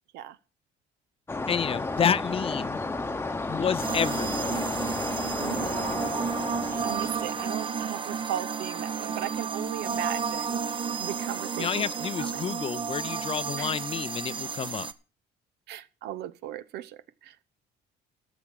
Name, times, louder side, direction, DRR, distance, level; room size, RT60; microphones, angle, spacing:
sound 1, 1.3-7.6, left 3 dB, 15° left, 0.9 m, -32 dB
voice 1, 1.5-2.8 3.5-4.5 11.6-14.9, left 7 dB, 35° left, 0.5 m, -29 dB
sound 2, 3.8-14.9, right 6 dB, 30° right, 0.7 m, -32 dB
voice 2, 5.4-6.0 6.7-12.4 13.6-13.8 15.7-17.4, right 12 dB, 80° right, 0.7 m, -37 dB
13.5 x 6.1 x 7.0 m
cardioid pair, 110°, 17 cm